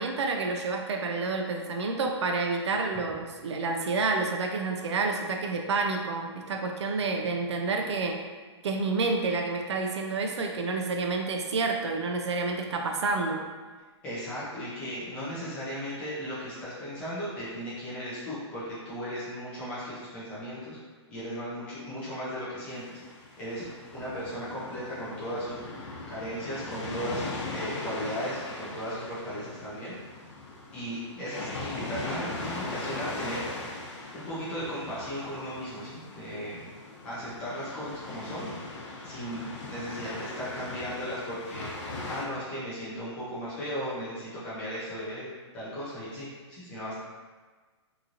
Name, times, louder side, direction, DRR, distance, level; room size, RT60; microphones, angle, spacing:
voice 1, 0.0-8.2 8.6-13.4, right 3 dB, 65° right, 3 dB, 0.4 m, -29 dB
voice 2, 14.0-20.8 21.1-23.0 23.4-23.7 23.9-29.9 30.7-33.7 34.1-36.6 37.0-38.5 39.0-45.3 45.5-46.9, equal, 10° left, -10 dB, 0.4 m, -36 dB
sound 1, 22.7-42.3, left 2 dB, 85° left, 0.7 m, -39 dB
3.0 x 2.6 x 2.4 m, 1.4 s
hypercardioid pair, 175°, 15 cm